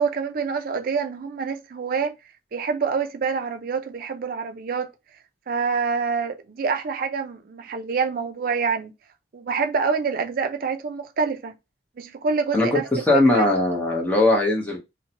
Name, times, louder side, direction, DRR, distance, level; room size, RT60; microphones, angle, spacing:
voice 1, 0.0-2.1 2.5-4.9 5.5-8.9 9.3-11.5 12.0-13.5, right 5 dB, 50° right, 0.4 m, -26 dB
voice 2, 13.1-14.8, left 2 dB, 10° left, 0.7 m, -19 dB
2.6 x 2.1 x 2.7 m
head